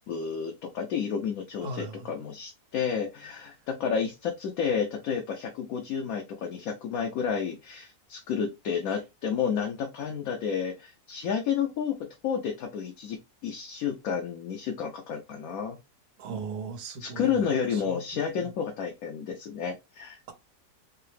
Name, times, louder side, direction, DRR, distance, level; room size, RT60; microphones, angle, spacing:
voice 1, 0.1-12.0 12.2-13.2 13.4-15.8 17.0-20.2, left 7 dB, 70° left, 1.1 m, -31 dB
voice 2, 1.6-2.2 16.2-17.3 17.7-18.5, right 3 dB, 75° right, 1.3 m, -38 dB
4.6 x 2.0 x 3.2 m
omnidirectional pair, 1.7 m